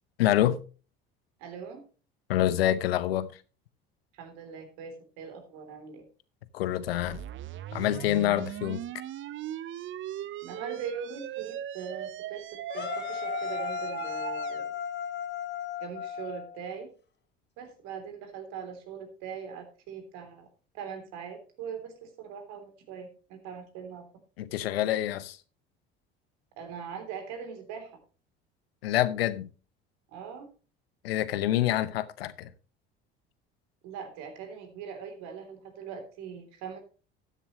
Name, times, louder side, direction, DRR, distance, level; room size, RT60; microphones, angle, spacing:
voice 1, 0.2-0.6 2.3-3.3 6.5-7.2 7.7-8.8 24.4-25.4 28.8-29.5 31.0-32.5, left 13 dB, 85° left, 0.8 m, -26 dB
voice 2, 1.4-1.8 4.1-6.1 10.4-14.7 15.8-16.9 17.6-20.5 20.7-24.1 26.6-27.9 30.1-30.5 33.8-36.8, right 6 dB, 65° right, 3.3 m, -41 dB
sound 1, 6.9-14.6, right 12 dB, 40° right, 0.7 m, -39 dB
sound 2, 12.7-16.8, left 7 dB, 40° left, 3.1 m, -35 dB
12.5 x 10.0 x 3.0 m
hypercardioid pair, 65°, 29 cm